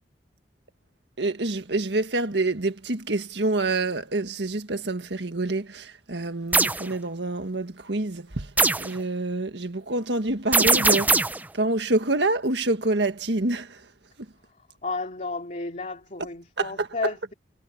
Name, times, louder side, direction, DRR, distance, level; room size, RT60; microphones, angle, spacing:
voice 1, 1.2-11.3 11.5-13.8 16.6-16.9, right 2 dB, 70° right, 1.7 m, -27 dB
sound 1, 6.5-6.8 8.6-8.9 10.5-11.4, right 3 dB, 10° right, 0.5 m, -20 dB
voice 2, 14.4-17.3, left 3 dB, 45° left, 2.8 m, -33 dB
head